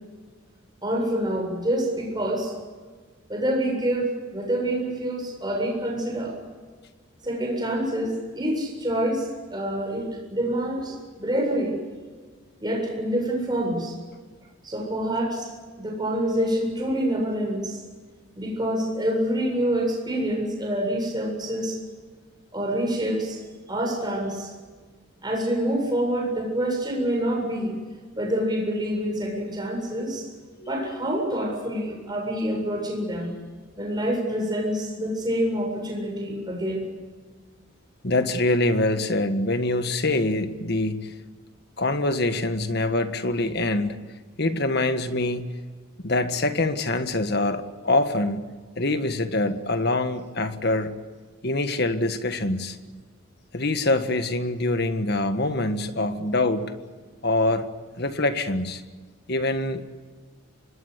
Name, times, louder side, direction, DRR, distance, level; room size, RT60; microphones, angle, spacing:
voice 1, 0.8-2.5 3.3-6.4 7.2-11.8 12.6-14.0 14.6-15.5 15.8-17.8 18.4-21.8 22.5-23.4 23.7-24.5 25.2-27.7 28.2-30.3 30.7-33.3 33.8-36.9, right 1 dB, 20° right, 1 dB, 7.7 m, -26 dB
voice 2, 30.6-31.2 38.0-41.1 41.8-44.0 44.4-45.5 46.0-50.9 51.4-52.8 53.5-56.7 57.2-57.7 58.0-58.8 59.3-59.8, left 2 dB, 50° left, 9 dB, 1.7 m, -25 dB
25.5 x 21.0 x 8.3 m, 1.5 s
head